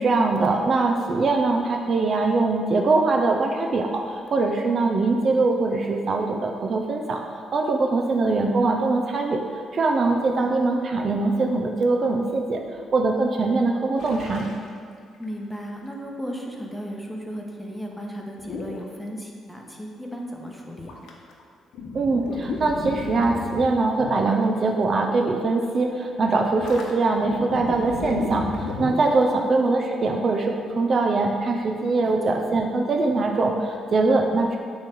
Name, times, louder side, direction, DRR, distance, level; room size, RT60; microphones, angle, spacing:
voice 1, 0.0-9.4 9.7-12.6 12.9-14.5 21.9-34.6, right 3 dB, 50° right, 2 dB, 0.6 m, -22 dB
voice 2, 8.0-8.4 10.4-10.7 15.2-21.0 29.2-29.6 32.0-32.4, equal, 5° left, 0 dB, 1.1 m, -35 dB
sound 1, 14.0-14.7 15.2-15.3 18.4-18.8 20.8-21.4 21.7-24.4 24.8-25.2 26.6-29.4, left 3 dB, 80° left, 0.9 m, -33 dB
8.2 x 3.2 x 6.1 m, 2.1 s
cardioid pair, 90°, 0 cm